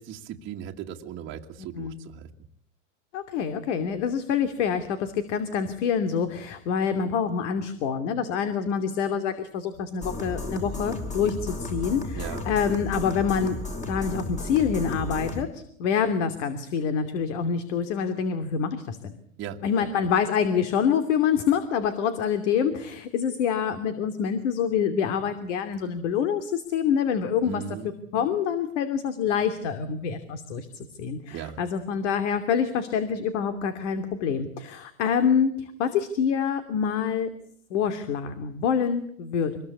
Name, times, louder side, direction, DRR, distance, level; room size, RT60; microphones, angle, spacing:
voice 1, 0.0-2.3 12.1-12.4 19.4-19.9 27.4-27.9 31.3-31.6, right 9 dB, 30° right, -1 dB, 1.8 m, -37 dB
voice 2, 3.1-19.2 19.6-27.8 28.1-37.3 37.7-39.6, left 7 dB, 60° left, 9 dB, 2.8 m, -26 dB
sound 1, 10.0-15.4, left 2 dB, 20° left, 4.3 m, -34 dB
26.0 x 21.0 x 8.5 m, 0.66 s
supercardioid pair, 135°, 40 cm